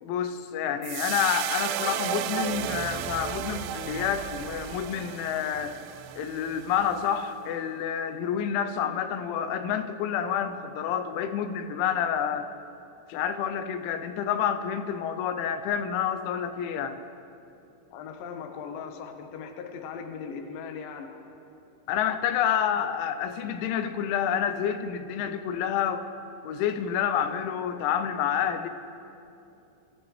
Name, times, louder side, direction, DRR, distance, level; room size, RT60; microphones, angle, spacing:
voice 1, 0.0-5.8 6.2-12.5 13.1-17.0 21.9-26.1 26.4-28.7, left 8 dB, 85° left, 10 dB, 3.1 m, -28 dB
sound 1, 0.8-7.2, right 11 dB, 80° right, 2.6 m, -34 dB
voice 2, 17.9-21.1, left 6 dB, 70° left, 4 dB, 2.3 m, -39 dB
27.5 x 14.5 x 3.2 m, 2.8 s
omnidirectional pair, 5.3 m